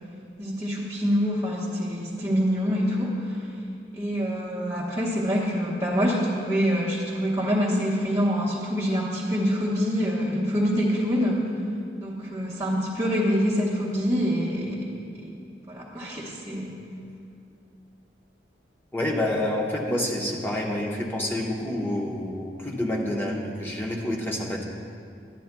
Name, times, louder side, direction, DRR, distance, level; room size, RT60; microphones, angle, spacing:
voice 1, 0.4-3.4 3.9-11.4 12.0-14.9 15.2-15.3 15.7-16.7, equal, 15° right, -9 dB, 1.0 m, -25 dB
voice 2, 18.9-24.6, left 1 dB, 10° left, -2 dB, 1.0 m, -28 dB
12.0 x 10.0 x 2.2 m, 2.5 s
head